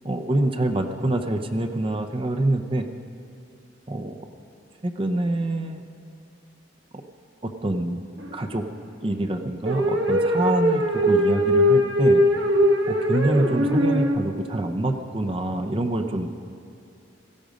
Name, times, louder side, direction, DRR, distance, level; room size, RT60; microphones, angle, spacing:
voice 1, 0.0-2.9 3.9-4.1 4.8-5.8 7.6-8.0 8.3-8.6 9.0-12.2 12.9-16.3, right 1 dB, 30° right, 6 dB, 0.6 m, -25 dB
sound 1, 8.2-8.6 9.7-14.2, equal, 70° right, 1.4 m, -21 dB
17.0 x 14.0 x 5.2 m, 2.5 s
head